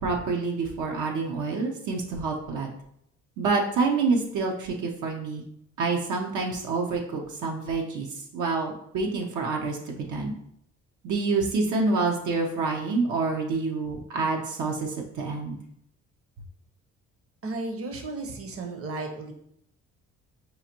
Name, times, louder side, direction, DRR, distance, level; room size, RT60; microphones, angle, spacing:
voice 1, 0.0-2.7 3.4-5.4 5.8-10.3 11.0-15.6, right 4 dB, 80° right, 1 dB, 0.7 m, -27 dB
voice 2, 17.4-19.3, right 2 dB, 50° right, 4 dB, 0.8 m, -34 dB
5.6 x 2.5 x 2.8 m, 0.73 s
cardioid pair, 90°, 30 cm